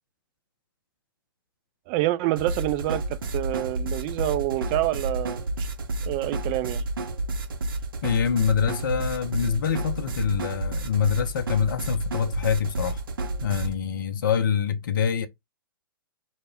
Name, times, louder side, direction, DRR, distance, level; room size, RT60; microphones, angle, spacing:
voice 1, 1.9-3.0 3.3-5.7 6.1-6.8, right 16 dB, 30° right, 0.3 m, -27 dB
sound 1, 2.4-13.7, right 2 dB, 65° right, 0.7 m, -30 dB
voice 2, 8.0-13.0 13.4-15.3, left 7 dB, 60° left, 0.4 m, -25 dB
2.1 x 2.0 x 3.4 m
figure-of-eight pair, 115°, 12 cm